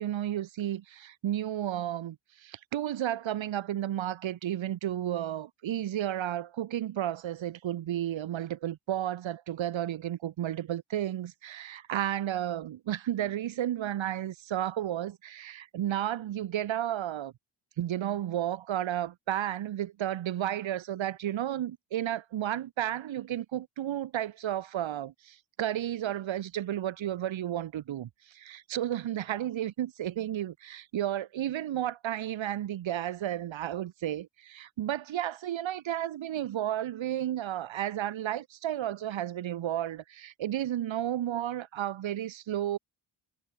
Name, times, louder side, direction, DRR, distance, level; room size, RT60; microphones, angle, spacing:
voice 1, 0.0-17.3 17.8-42.8, right 12 dB, 85° right, 1.8 m, -32 dB
wide cardioid pair, 145°, 45 cm